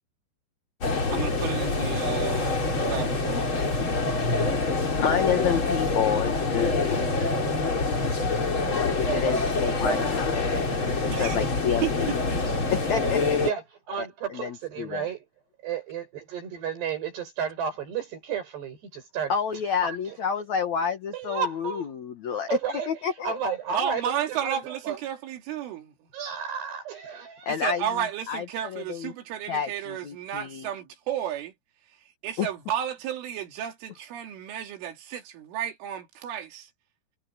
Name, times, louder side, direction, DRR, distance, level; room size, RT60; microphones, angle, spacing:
sound 1, 0.8-13.5, left 3 dB, 30° left, 3.6 m, -26 dB
voice 1, 1.1-3.6 11.1-11.4 11.8-12.2 12.6-12.7 23.7-26.1 27.5-31.5 32.2-36.7, right 10 dB, 85° right, 5.0 m, -33 dB
voice 2, 5.0-6.7 8.7-10.5 11.0-12.1 12.7-13.5 14.0-14.1 14.3-15.0 19.3-22.5 22.9-23.4 27.4-27.8 28.3-29.1 29.5-30.7 32.4-32.5, left 7 dB, 90° left, 1.6 m, -29 dB
voice 3, 13.4-15.2 15.6-19.4 19.8-20.2 21.1-21.9 22.5-25.0 26.1-27.5, right 7 dB, 60° right, 8.2 m, -32 dB
omnidirectional pair, 5.5 m